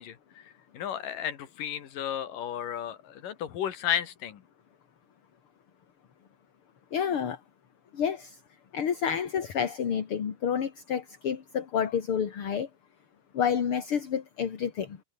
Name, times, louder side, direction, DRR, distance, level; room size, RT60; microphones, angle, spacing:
voice 1, 0.0-4.4, left 9 dB, 80° left, 3.7 m, -33 dB
voice 2, 6.9-7.4 7.9-8.4 8.7-12.7 13.3-15.0, left 8 dB, 45° left, 2.6 m, -29 dB
omnidirectional pair, 3.8 m